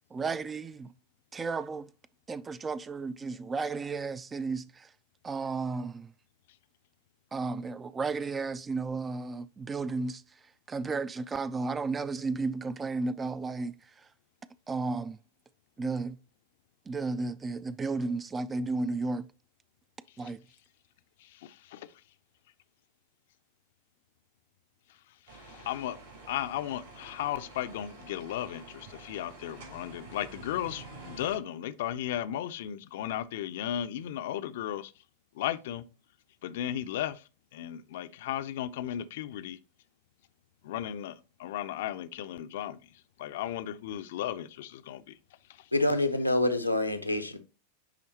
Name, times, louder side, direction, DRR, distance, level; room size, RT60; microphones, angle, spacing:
voice 1, 0.1-0.9 1.3-1.9 2.3-4.9 5.2-6.1 7.3-10.2 10.7-13.7 14.7-15.2 15.8-16.2 16.9-19.3 20.2-20.4, right 3 dB, 15° right, 0.3 m, -33 dB
voice 2, 21.2-21.9 25.3-26.0 26.3-34.9 35.3-35.8 36.4-37.2 37.5-39.6 40.6-45.2 45.5-45.7, left 11 dB, 55° left, 0.5 m, -35 dB
sound 1, 25.3-31.4, right 3 dB, 60° right, 3.1 m, -49 dB
voice 3, 45.7-47.4, left 1 dB, 90° left, 0.8 m, -26 dB
10.0 x 3.5 x 2.8 m
figure-of-eight pair, 90°, 0 cm